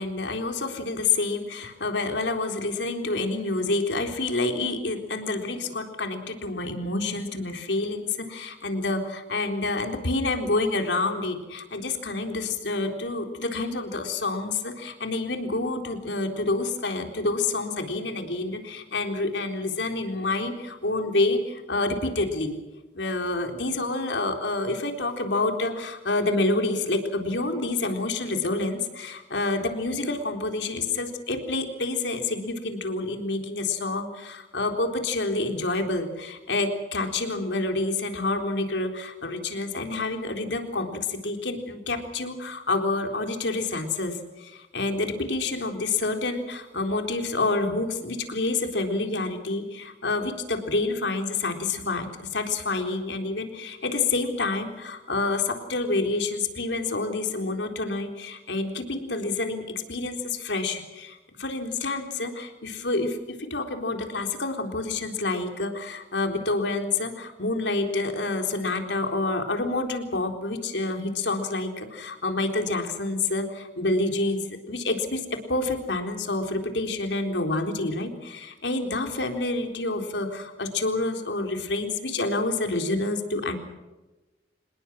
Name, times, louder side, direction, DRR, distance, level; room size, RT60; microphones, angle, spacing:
voice 1, 0.0-22.6 22.9-52.1 52.3-75.2 75.5-83.6, left 2 dB, 75° left, 5 dB, 3.9 m, -28 dB
27.0 x 20.5 x 6.3 m, 1.1 s
head